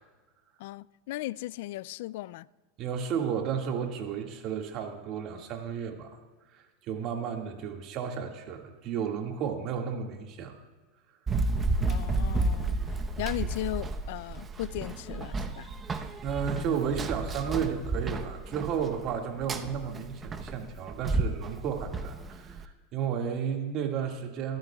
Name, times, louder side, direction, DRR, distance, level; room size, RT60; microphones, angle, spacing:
voice 1, 0.6-2.5 11.9-12.8 13.2-15.7, left 17 dB, 70° left, 0.3 m, -36 dB
voice 2, 2.8-6.2 6.5-10.6 16.2-24.6, right 7 dB, 50° right, 1.9 m, -33 dB
Run, 11.3-22.6, right 3 dB, 25° right, 0.9 m, -32 dB
22.5 x 13.0 x 2.3 m
hypercardioid pair, 110°, 0 cm